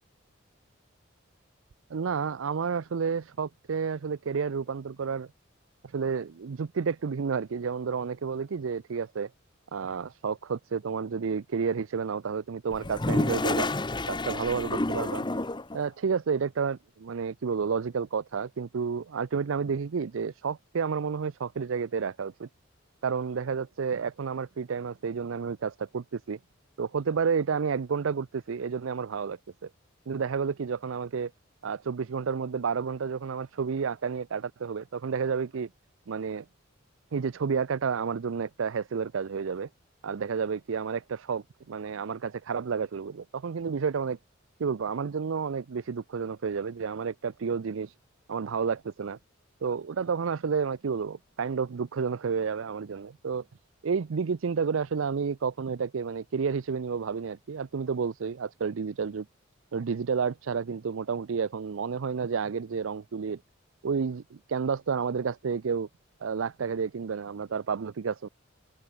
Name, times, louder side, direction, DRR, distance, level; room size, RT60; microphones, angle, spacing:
voice 1, 1.9-5.3 5.8-9.3 9.7-13.7 14.1-15.3 15.7-22.5 23.0-26.4 26.8-29.7 30.1-31.3 31.6-35.7 36.1-36.4 37.1-39.7 40.0-44.2 44.6-47.9 48.3-49.2 49.6-53.4 53.8-59.3 59.7-63.4 63.8-65.9 66.2-68.3, right 6 dB, 80° right, 0.5 m, -30 dB
Toilet flush, 12.7-15.8, left 2 dB, 25° left, 1.0 m, -29 dB
open air
head